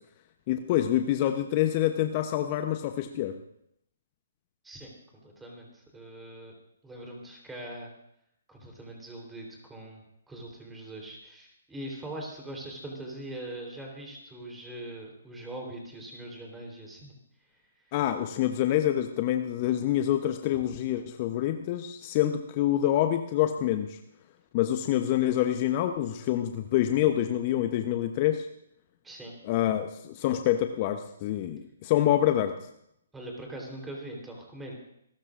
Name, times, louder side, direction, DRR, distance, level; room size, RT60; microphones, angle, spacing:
voice 1, 0.5-3.3 17.9-24.0 24.5-28.5 29.4-32.5, left 12 dB, 35° left, 7 dB, 0.9 m, -26 dB
voice 2, 5.2-6.5 6.8-7.9 8.5-10.0 10.3-17.1 17.8-17.9 29.0-29.3 33.1-34.7, right 1 dB, 10° right, -1 dB, 3.7 m, -42 dB
27.0 x 13.0 x 2.6 m, 0.75 s
figure-of-eight pair, 135°, 0 cm